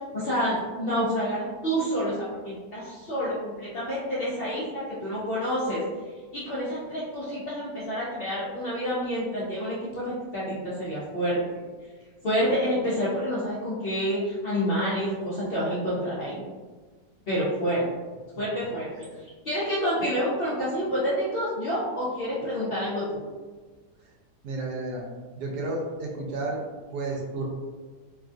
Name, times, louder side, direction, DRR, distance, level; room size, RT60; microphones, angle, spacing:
voice 1, 0.1-5.8 6.3-11.4 12.2-16.4 17.3-17.8 18.4-18.9 19.4-23.2, equal, 80° left, -9 dB, 0.5 m, -28 dB
voice 2, 24.4-25.0 25.4-26.6 26.9-27.4, right 2 dB, 75° right, -1 dB, 1.1 m, -31 dB
3.0 x 2.4 x 2.5 m, 1.4 s
omnidirectional pair, 1.9 m